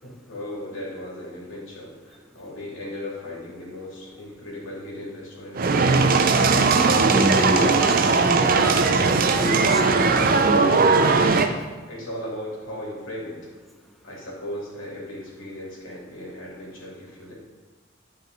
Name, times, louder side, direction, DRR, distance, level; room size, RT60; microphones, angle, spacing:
voice 1, 0.0-5.8 11.9-13.4 14.0-17.3, left 1 dB, 80° left, -5 dB, 2.7 m, -37 dB
Spin the wheel sound, 5.6-11.5, right 4 dB, 45° right, 0.5 m, -19 dB
voice 2, 6.7-10.6, equal, ahead, 1 dB, 0.7 m, -29 dB
10.5 x 5.0 x 3.9 m, 1.3 s
head